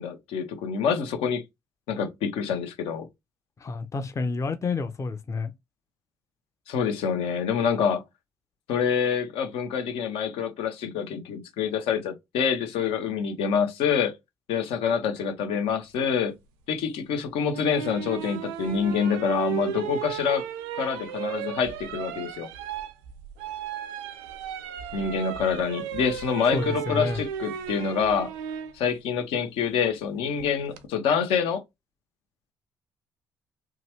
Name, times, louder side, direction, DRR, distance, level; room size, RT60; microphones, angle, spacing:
voice 1, 0.0-1.4 1.9-3.1 6.7-8.0 8.7-14.1 14.5-16.3 16.7-20.4 20.8-22.5 24.9-28.3 28.7-31.6, left 6 dB, 70° left, 0.8 m, -26 dB
voice 2, 3.6-5.5 26.5-27.2, left 4 dB, 30° left, 0.6 m, -29 dB
sound 1, 17.5-28.7 30.4-30.8, right 9 dB, 80° right, 0.5 m, -35 dB
2.9 x 2.3 x 2.9 m
hypercardioid pair, 50°, 10 cm